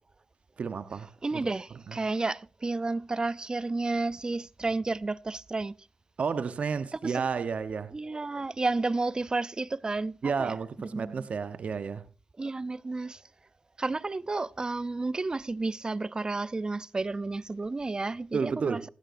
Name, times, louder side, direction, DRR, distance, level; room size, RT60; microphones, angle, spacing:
voice 1, 0.6-1.4 1.9-2.0 6.2-7.9 10.2-12.0 18.3-18.8, right 5 dB, 70° right, 1.0 m, -31 dB
voice 2, 1.2-5.7 7.0-7.2 7.9-10.6 10.9-11.3 12.4-13.2 13.8-18.8, right 3 dB, 35° right, 0.5 m, -31 dB
17.5 x 13.0 x 2.6 m
cardioid pair, 60°, 2 cm